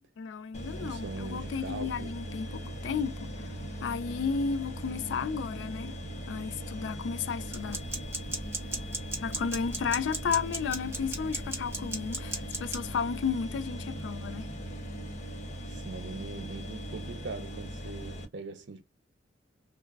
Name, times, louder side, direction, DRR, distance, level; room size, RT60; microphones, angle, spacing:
voice 1, 0.2-3.5 3.8-6.0 6.3-7.8 9.2-14.5, left 6 dB, 85° left, 0.3 m, -33 dB
sound 1, 0.5-18.2, equal, 40° left, 0.6 m, -39 dB
voice 2, 0.8-2.1 15.7-18.8, right 3 dB, 70° right, 0.6 m, -41 dB
sound 2, 7.5-12.9, right 2 dB, 15° right, 0.6 m, -36 dB
3.2 x 2.0 x 2.2 m
head